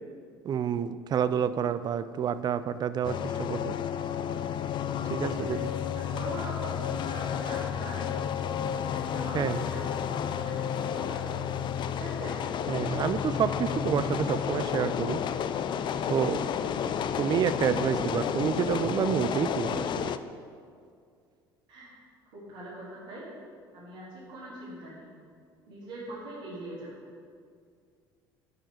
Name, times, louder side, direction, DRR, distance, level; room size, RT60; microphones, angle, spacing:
voice 1, 0.5-3.7 5.1-5.7 9.3-9.6 12.7-15.2 16.1-16.4 17.2-20.1, right 8 dB, 35° right, 13 dB, 0.4 m, -29 dB
sound 1, 3.0-20.2, left 8 dB, 40° left, 0.4 m, -31 dB
voice 2, 5.1-5.6 5.9-8.3 8.9-11.6 12.0-12.3 16.4-16.8 21.7-21.9 22.3-23.3 23.7-25.1 25.7-26.9, right 1 dB, 70° right, -9 dB, 2.1 m, -42 dB
9.5 x 4.5 x 4.7 m, 2.2 s
figure-of-eight pair, 60°, 12 cm